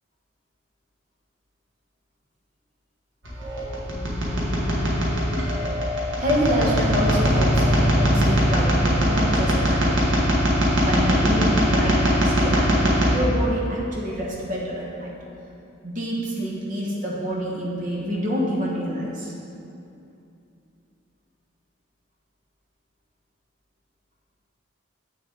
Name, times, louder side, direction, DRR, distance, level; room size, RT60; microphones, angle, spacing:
sound 1, 3.2-13.1, equal, 65° right, 1.6 m, -21 dB
voice 1, 6.2-10.0 10.8-15.1 15.8-19.3, equal, 40° right, -3 dB, 1.2 m, -27 dB
7.7 x 6.5 x 3.9 m, 2.6 s
head